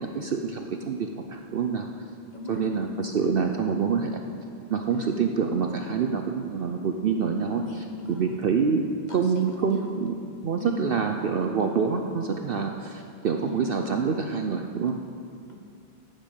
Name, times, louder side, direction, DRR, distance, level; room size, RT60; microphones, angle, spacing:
voice 1, 0.0-1.9 2.5-4.2 4.7-7.6 8.1-8.8 9.1-10.1 10.4-14.9, right 6 dB, 55° right, 4 dB, 0.7 m, -26 dB
voice 2, 2.3-3.2 4.9-5.1 7.6-8.3 9.1-9.9 10.6-10.9 13.4-13.7 15.5-15.6, left 1 dB, 35° left, 1 dB, 1.3 m, -38 dB
11.5 x 6.3 x 8.1 m, 2.4 s
omnidirectional pair, 1.3 m